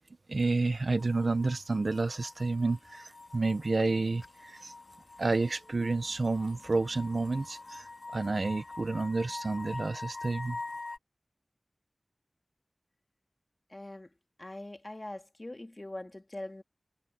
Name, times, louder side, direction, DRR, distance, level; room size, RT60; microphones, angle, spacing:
voice 1, 0.3-4.7 5.2-7.9 8.1-10.6, right 3 dB, 80° right, 1.1 m, -30 dB
sound 1, 1.0-11.0, left 3 dB, 75° left, 2.7 m, -45 dB
voice 2, 13.7-14.1 14.4-16.6, left 1 dB, 40° left, 2.2 m, -42 dB
wide cardioid pair, 60°, 0 cm